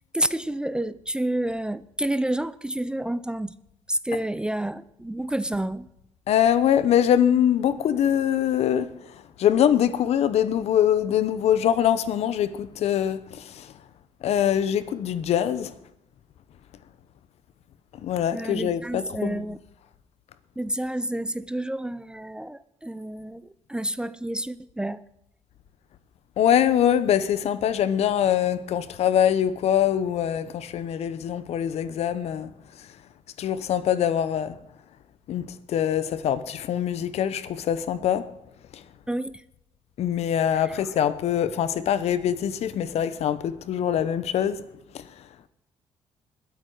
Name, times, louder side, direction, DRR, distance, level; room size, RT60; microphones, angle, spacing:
voice 1, 0.1-3.6 3.9-5.9 18.3-19.6 20.6-25.0 39.1-39.4 40.5-40.8, right 1 dB, 10° right, 0.4 m, -29 dB
voice 2, 6.3-8.9 9.4-13.7 14.2-15.7 18.0-19.4 26.4-32.5 33.4-34.6 35.3-38.3 38.7-38.8 40.0-44.6 44.9-45.0, left 9 dB, 70° left, 0.8 m, -23 dB
21.5 x 8.3 x 4.7 m
cardioid pair, 95°, 11 cm